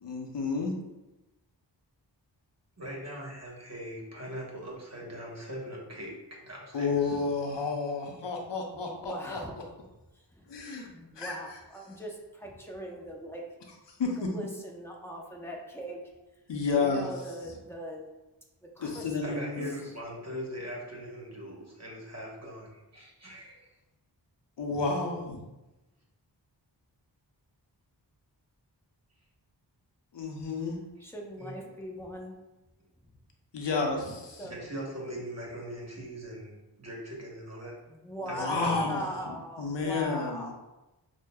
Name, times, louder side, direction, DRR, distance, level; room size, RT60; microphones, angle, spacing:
voice 1, 0.0-0.7 6.7-9.4 10.5-10.9 11.2-11.3 14.0-14.3 16.5-17.1 18.8-19.7 24.6-25.4 30.1-30.8 33.5-34.4 38.4-39.0 39.6-40.4, left 4 dB, 70° left, 1 dB, 0.7 m, -31 dB
voice 2, 2.8-6.2 6.4-7.2 19.2-23.7 31.4-31.7 34.5-37.7 38.3-38.8, equal, 35° right, -3 dB, 1.0 m, -40 dB
voice 3, 8.7-9.7 10.3-10.5 10.9-13.4 14.2-16.0 16.7-18.1 18.8-19.5 19.8-19.9 31.0-32.3 33.7-34.7 37.9-40.5, equal, 5° left, -1 dB, 0.7 m, -40 dB
6.1 x 2.1 x 2.2 m, 1.0 s
wide cardioid pair, 60°, 44 cm